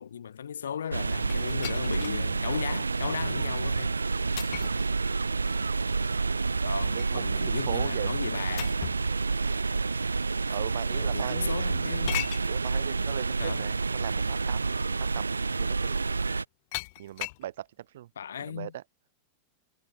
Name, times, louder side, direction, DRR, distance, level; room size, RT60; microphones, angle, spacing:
voice 1, 0.0-3.9 6.6-8.7 10.5-10.6 10.9-12.2 13.4-13.7 18.1-18.7, left 8 dB, 65° left, 1.4 m, -36 dB
sound 1, 0.9-16.4, right 4 dB, 80° right, 0.4 m, -29 dB
sound 2, 1.3-2.2 2.8-2.9 4.4-4.9 6.5-7.2 8.6-9.1 10.1-10.2 12.1-12.5 13.9-14.0 14.5-14.7 16.7-17.5, left 24 dB, 50° left, 0.9 m, -37 dB
voice 2, 6.9-8.2 10.5-11.6 12.5-15.3 15.6-16.0 17.0-17.7 17.9-18.1 18.5-18.8, right 13 dB, 60° right, 1.0 m, -38 dB
figure-of-eight pair, 90°, 0 cm